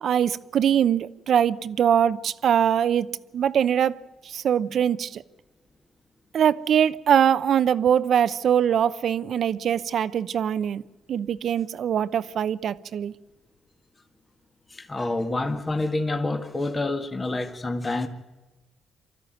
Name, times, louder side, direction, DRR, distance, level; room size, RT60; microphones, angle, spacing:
voice 1, 0.0-4.0 4.2-5.2 6.3-10.8 11.1-13.1, right 9 dB, 65° right, 0.7 m, -22 dB
voice 2, 14.7-18.1, left 2 dB, 25° left, 1.8 m, -27 dB
25.0 x 13.5 x 9.2 m
cardioid pair, 90°, 0 cm